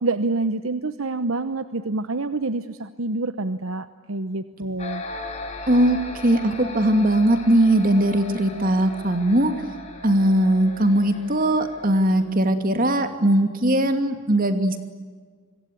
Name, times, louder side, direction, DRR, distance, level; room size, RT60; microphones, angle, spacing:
voice 1, 0.0-5.0, right 3 dB, 85° right, 12 dB, 1.0 m, -27 dB
sound 1, 4.8-12.2, left 2 dB, 35° left, 7.8 m, -37 dB
voice 2, 5.7-6.0 6.2-9.5 10.0-14.8, right 1 dB, 45° right, 8 dB, 2.7 m, -20 dB
26.0 x 23.0 x 9.5 m, 1.5 s
head